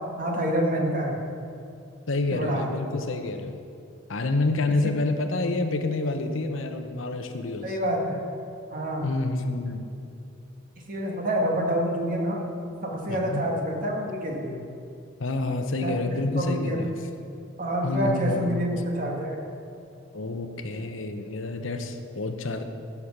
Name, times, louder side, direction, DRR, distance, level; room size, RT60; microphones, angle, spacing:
voice 1, 0.2-1.2 2.3-2.7 7.6-8.2 8.7-9.1 10.9-12.4 12.8-14.6 15.8-16.8 17.6-19.4, right 1 dB, 45° right, 0 dB, 1.9 m, -27 dB
voice 2, 2.1-3.6 4.1-7.8 9.0-9.9 13.1-13.5 15.2-17.0 17.8-18.6 20.1-22.6, left 2 dB, 80° left, 7 dB, 0.9 m, -28 dB
14.5 x 7.1 x 5.9 m, 2.5 s
head